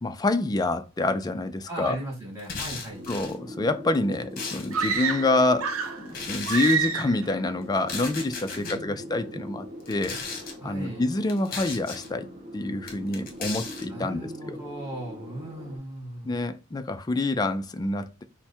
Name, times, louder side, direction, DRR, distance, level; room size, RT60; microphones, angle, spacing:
voice 1, 0.0-2.0 3.1-5.7 6.0-10.2 10.6-12.3 12.5-14.6 16.2-18.2, left 2 dB, 20° left, 0.3 m, -27 dB
voice 2, 1.7-3.1 8.6-9.4 10.6-11.0 13.9-16.4, right 1 dB, 15° right, 2.1 m, -38 dB
sound 1, 2.4-3.3 3.9-5.0 6.1-6.8 7.7-8.8 9.8-10.5 11.3-12.1 12.9-13.9, left 4 dB, 45° left, 1.0 m, -36 dB
sound 2, 2.9-15.8, equal, 35° right, 1.3 m, -43 dB
sound 3, 4.7-6.1 6.5-7.3, right 6 dB, 85° right, 0.6 m, -27 dB
4.6 x 2.1 x 4.3 m
head